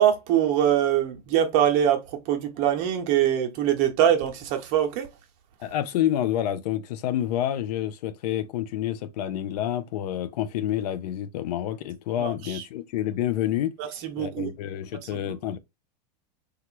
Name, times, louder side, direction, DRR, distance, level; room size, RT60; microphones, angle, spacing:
voice 1, 0.0-5.1 12.2-12.6 13.8-14.5 15.1-15.3, right 10 dB, 45° right, 0.8 m, -23 dB
voice 2, 5.6-13.7 14.2-15.6, left 11 dB, 70° left, 0.5 m, -28 dB
2.9 x 2.4 x 3.1 m
supercardioid pair, 145°, 21 cm